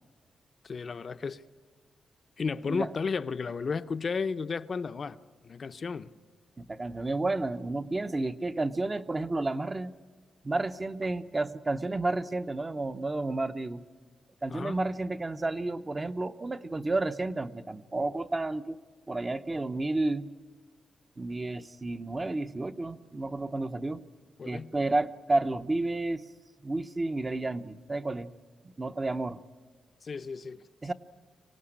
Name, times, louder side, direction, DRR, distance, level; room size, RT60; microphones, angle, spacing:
voice 1, 0.6-1.4 2.4-5.2 5.4-6.1 14.5-14.8 24.4-24.7 30.0-30.6, left 5 dB, 40° left, 12 dB, 0.7 m, -33 dB
voice 2, 6.6-9.9 10.4-13.8 14.4-18.8 19.1-20.3 21.2-24.0 24.5-26.2 26.6-28.3 28.8-29.4 30.8-30.9, right 2 dB, 20° right, 11 dB, 0.7 m, -31 dB
25.5 x 18.5 x 9.9 m, 1.5 s
wide cardioid pair, 165°, 0 cm